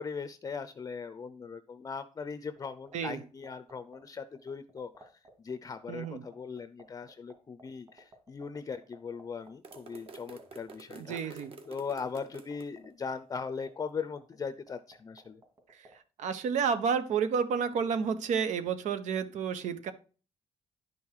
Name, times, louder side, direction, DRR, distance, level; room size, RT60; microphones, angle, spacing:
voice 1, 0.0-5.1 5.4-15.4, left 5 dB, 30° left, 11 dB, 0.6 m, -39 dB
sound 1, 2.6-15.9, right 3 dB, 30° right, 2.6 m, -54 dB
voice 2, 5.9-6.3 10.9-11.5 15.8-15.9 16.2-19.9, right 6 dB, 80° right, 11 dB, 1.2 m, -30 dB
sound 2, 9.6-12.7, right 3 dB, 50° right, 1.6 m, -49 dB
11.0 x 5.5 x 4.8 m, 0.36 s
cardioid pair, 145°, 12 cm